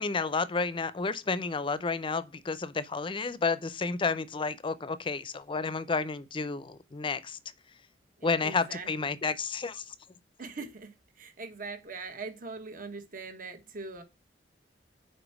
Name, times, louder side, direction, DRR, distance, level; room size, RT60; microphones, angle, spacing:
voice 1, 0.0-7.4 8.2-9.9, left 4 dB, 30° left, 0.5 m, -31 dB
voice 2, 8.2-8.9 10.4-14.0, right 4 dB, 50° right, 1.3 m, -41 dB
5.1 x 4.4 x 6.0 m
head